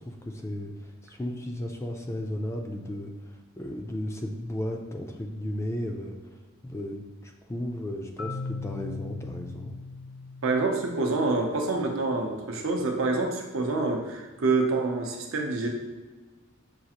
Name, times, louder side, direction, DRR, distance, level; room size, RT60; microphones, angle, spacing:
voice 1, 0.0-3.1 3.6-6.1 6.6-9.7, left 1 dB, 15° left, 2 dB, 0.3 m, -34 dB
Marimba xylophone, 8.2-12.1, left 3 dB, 65° left, 0.6 m, -40 dB
voice 2, 10.4-15.7, right 3 dB, 75° right, 2 dB, 0.6 m, -27 dB
6.2 x 2.4 x 2.9 m, 1.3 s
head